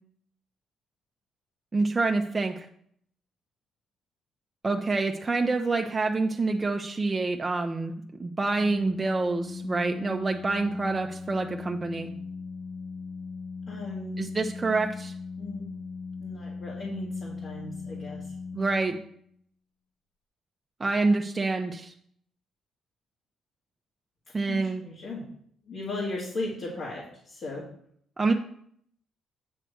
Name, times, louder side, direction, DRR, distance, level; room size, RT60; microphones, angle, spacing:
voice 1, 1.7-2.7 4.6-7.9 8.2-12.1 14.2-15.1 18.5-19.0 20.8-21.9 24.3-24.8 28.2-28.3, right 3 dB, 25° right, 3 dB, 0.6 m, -27 dB
Organ, 8.5-19.3, left 4 dB, 80° left, 1.2 m, -39 dB
voice 2, 13.7-14.2 15.4-15.7 16.2-18.3 24.5-25.3 25.7-27.7, left 2 dB, 65° left, -6 dB, 1.9 m, -36 dB
8.9 x 3.2 x 6.4 m, 0.65 s
cardioid pair, 90°, 0 cm